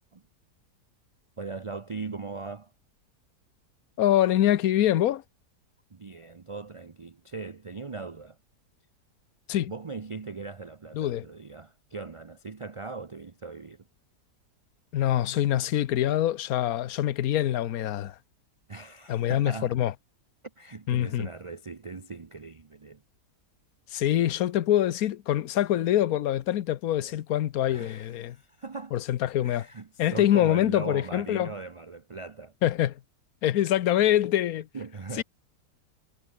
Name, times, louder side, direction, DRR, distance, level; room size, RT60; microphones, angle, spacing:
voice 1, 1.4-2.7 5.9-8.4 9.7-13.8 18.7-19.8 20.6-23.0 27.0-27.1 27.7-28.9 29.4-32.5 34.7-35.2, right 4 dB, 40° right, 0.4 m, -39 dB
voice 2, 4.0-5.2 9.5-9.7 10.9-11.3 14.9-18.2 19.1-19.9 20.9-21.3 23.9-28.4 28.9-29.7 30.0-31.5 32.6-33.0 33.4-34.7 35.1-35.2, left 12 dB, 65° left, 1.2 m, -25 dB
omnidirectional pair, 1.8 m